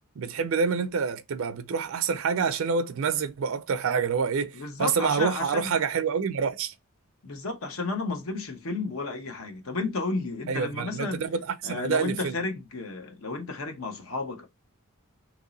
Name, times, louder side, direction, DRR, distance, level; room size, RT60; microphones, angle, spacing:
voice 1, 0.2-6.7 10.5-12.4, right 6 dB, 65° right, 0.4 m, -27 dB
voice 2, 4.5-5.7 7.2-11.2 11.6-14.5, left 3 dB, 70° left, 0.9 m, -32 dB
3.0 x 2.7 x 3.9 m
head